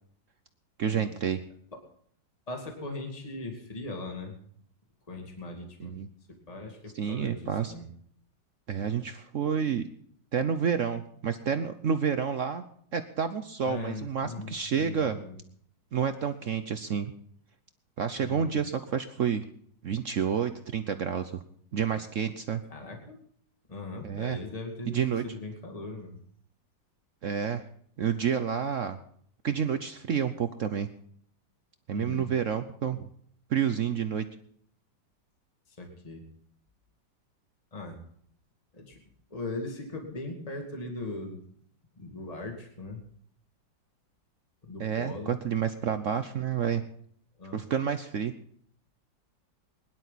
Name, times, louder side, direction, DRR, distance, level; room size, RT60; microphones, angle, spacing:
voice 1, 0.8-1.4 5.8-6.1 6.9-7.7 8.7-9.9 10.3-12.6 12.9-15.2 15.9-17.1 18.0-19.4 19.8-21.4 21.7-22.6 24.0-24.4 24.9-25.2 27.2-27.6 28.0-29.0 29.4-30.9 31.9-33.1 33.5-34.3 44.8-46.8 47.5-48.3, right 7 dB, 60° right, 9 dB, 0.9 m, -29 dB
voice 2, 2.5-4.4 5.1-5.9 6.5-7.9 13.6-15.4 18.2-18.6 22.7-23.2 23.7-25.0 25.2-26.2 31.9-32.3 35.7-36.2 37.7-38.0 38.7-39.0 39.3-41.4 42.0-43.0 44.6-45.4 47.4-47.6, left 2 dB, 20° left, 2 dB, 2.4 m, -39 dB
21.5 x 11.5 x 4.1 m, 0.63 s
omnidirectional pair, 2.0 m